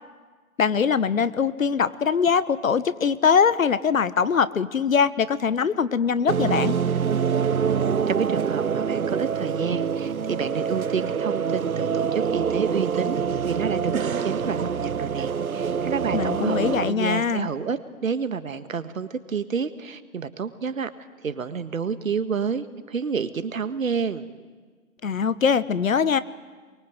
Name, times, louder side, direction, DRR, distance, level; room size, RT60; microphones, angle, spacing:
voice 1, 0.6-6.7 16.1-17.5 25.0-26.2, left 6 dB, 70° left, 16 dB, 1.3 m, -22 dB
sound 1, 6.3-16.9, right 7 dB, 90° right, 0.8 m, -25 dB
voice 2, 8.1-20.9 21.2-24.3, right 6 dB, 70° right, 12 dB, 1.7 m, -29 dB
25.0 x 23.0 x 8.0 m, 1.4 s
figure-of-eight pair, 145°, 42 cm